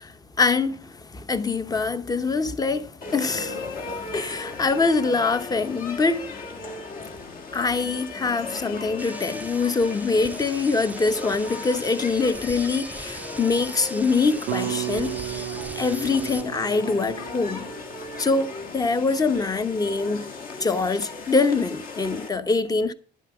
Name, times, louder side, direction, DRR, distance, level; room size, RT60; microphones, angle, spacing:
voice 1, 0.0-6.3 7.1-7.3 7.5-15.5 15.7-17.7 18.2-20.3 20.6-22.9, left 4 dB, 20° left, 0.8 m, -24 dB
sound 1, 3.0-22.3, left 3 dB, 55° left, 2.0 m, -37 dB
sound 2, 9.0-16.4, right 2 dB, 10° right, 0.5 m, -40 dB
sound 3, 14.5-18.7, right 19 dB, 80° right, 0.4 m, -34 dB
10.5 x 7.4 x 6.0 m
cardioid pair, 110°, 17 cm